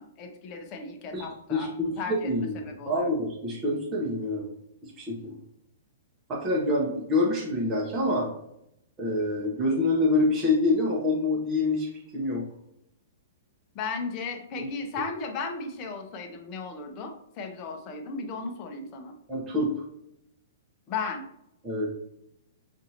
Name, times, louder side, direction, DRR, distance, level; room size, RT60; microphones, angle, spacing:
voice 1, 0.0-3.1 13.7-19.1 20.9-21.2, left 4 dB, 30° left, 4 dB, 0.7 m, -36 dB
voice 2, 1.1-4.4 4.8-5.4 6.3-8.3 9.0-12.4 14.6-14.7 19.3-19.7 21.6-21.9, left 2 dB, 20° right, -4 dB, 0.8 m, -26 dB
5.4 x 2.5 x 2.8 m, 0.81 s
hypercardioid pair, 155°, 0 cm